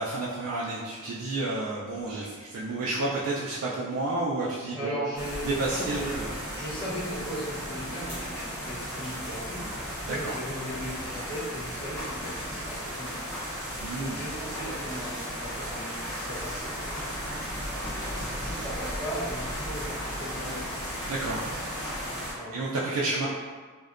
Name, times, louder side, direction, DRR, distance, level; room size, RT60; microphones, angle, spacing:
voice 1, 0.0-4.9 5.4-6.3 10.0-10.3 13.8-14.2 21.1-21.5 22.5-23.3, right 2 dB, 75° right, -6 dB, 0.3 m, -30 dB
voice 2, 4.7-6.2 6.5-9.7 10.0-13.2 13.9-17.1 18.3-20.7 22.3-22.6 23.2-23.3, equal, 75° left, -13 dB, 0.9 m, -37 dB
sound 1, 5.1-22.3, equal, ahead, 1.0 m, -35 dB
2.5 x 2.1 x 2.4 m, 1.5 s
head